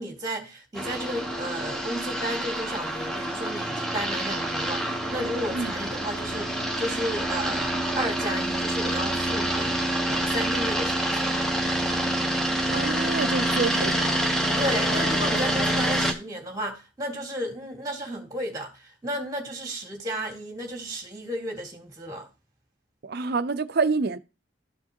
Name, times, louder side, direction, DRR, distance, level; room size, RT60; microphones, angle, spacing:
voice 1, 0.0-11.4 14.6-22.3, equal, 20° right, 2.1 m, -33 dB
sound 1, 0.8-16.1, right 1 dB, ahead, 1.0 m, -27 dB
voice 2, 12.7-14.2 23.0-24.2, right 4 dB, 50° right, 0.5 m, -27 dB
13.0 x 4.7 x 2.9 m
head